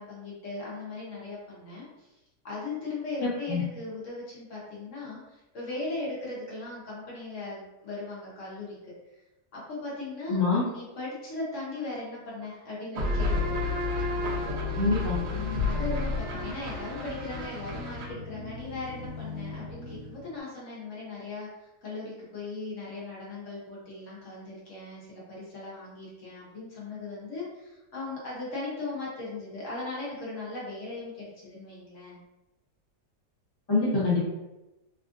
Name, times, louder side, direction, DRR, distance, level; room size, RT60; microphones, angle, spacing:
voice 1, 0.0-2.1 2.4-8.9 9.5-10.4 10.7-13.7 15.3-32.2, left 3 dB, 55° left, -6 dB, 1.1 m, -38 dB
voice 2, 10.3-10.7 14.8-15.2 33.7-34.2, left 3 dB, 25° left, -7 dB, 0.5 m, -24 dB
sound 1, 12.9-20.3, left 3 dB, 70° right, 1.2 m, -31 dB
3.4 x 2.4 x 2.5 m, 1.0 s
omnidirectional pair, 1.8 m